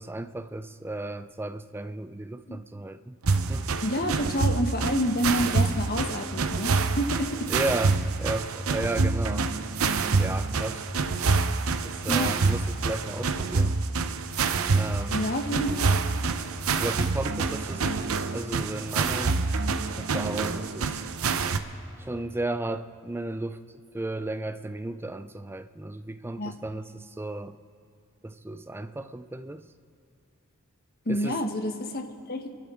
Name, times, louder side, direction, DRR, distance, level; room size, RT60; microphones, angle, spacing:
voice 1, 0.0-3.2 3.5-3.7 4.0-4.3 7.5-9.5 10.2-10.9 11.8-13.8 14.7-15.4 16.8-17.9 18.3-19.4 20.0-21.1 22.0-23.6 23.9-27.6 28.2-29.7 31.1-31.4, right 2 dB, 10° right, 10 dB, 0.4 m, -34 dB
sound 1, 3.2-21.6, right 4 dB, 75° right, 0.7 m, -27 dB
voice 2, 3.8-7.5 12.1-12.4 15.1-16.0 26.4-26.6 31.1-32.5, equal, 45° left, 6 dB, 1.1 m, -28 dB
28.0 x 11.5 x 3.7 m, 2.5 s
head